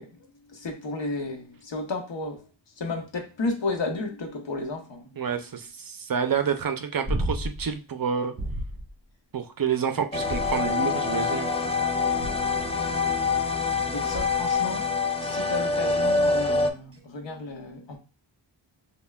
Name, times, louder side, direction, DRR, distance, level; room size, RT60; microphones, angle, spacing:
voice 1, 0.0-2.5 2.8-5.2 13.9-18.0, left 3 dB, 70° left, 0.9 m, -33 dB
voice 2, 5.2-8.3 9.3-11.5, right 7 dB, 50° right, 0.5 m, -28 dB
sound 1, 7.1-7.7 8.4-8.9 10.2-11.0 12.2-12.6 14.1-14.5 16.9-17.0, equal, 30° right, 1.0 m, -32 dB
sound 2, 10.1-16.7, left 4 dB, 15° left, 0.3 m, -25 dB
5.3 x 2.2 x 2.3 m
wide cardioid pair, 85°, 46 cm